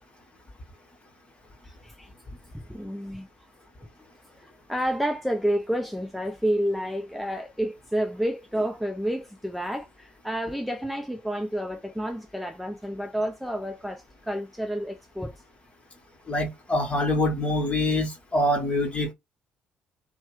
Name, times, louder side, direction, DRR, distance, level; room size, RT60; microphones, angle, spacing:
voice 1, 1.6-2.1 2.7-3.3 4.3-15.3, equal, ahead, 0.5 m, -30 dB
voice 2, 16.3-19.1, left 1 dB, 25° left, 1.3 m, -25 dB
2.8 x 2.2 x 3.1 m
figure-of-eight pair, 45°, 5 cm